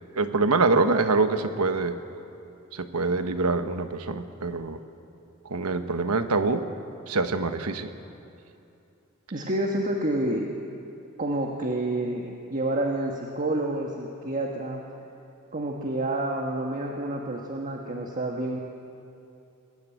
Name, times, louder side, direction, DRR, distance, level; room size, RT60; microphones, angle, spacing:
voice 1, 0.2-2.0 2.7-4.8 5.5-6.6 7.1-7.9, right 3 dB, 90° right, 9 dB, 1.1 m, -25 dB
voice 2, 9.3-10.5 11.2-14.8 15.5-18.6, right 1 dB, 40° right, 0 dB, 1.4 m, -29 dB
21.5 x 14.5 x 9.1 m, 2.7 s
head